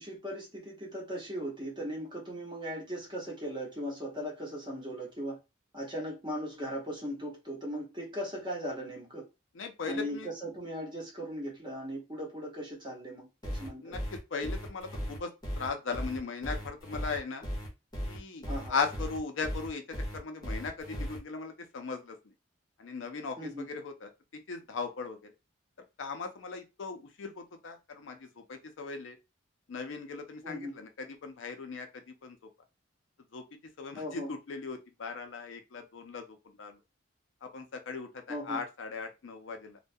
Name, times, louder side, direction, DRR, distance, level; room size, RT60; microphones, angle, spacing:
voice 1, 0.0-5.4 5.7-9.3 9.8-13.9 18.5-18.8 23.4-23.6 30.4-30.7 33.9-34.3 38.3-38.6, equal, 20° right, 0.9 m, -38 dB
voice 2, 9.5-10.3 13.8-17.5 18.1-18.4 18.7-22.2 22.8-24.1 24.5-25.3 26.0-29.2 29.7-32.4 33.3-33.4 33.8-36.8 37.4-39.8, left 4 dB, 70° left, 0.5 m, -38 dB
sound 1, 13.4-21.2, equal, 20° left, 0.7 m, -36 dB
2.2 x 2.1 x 2.6 m
head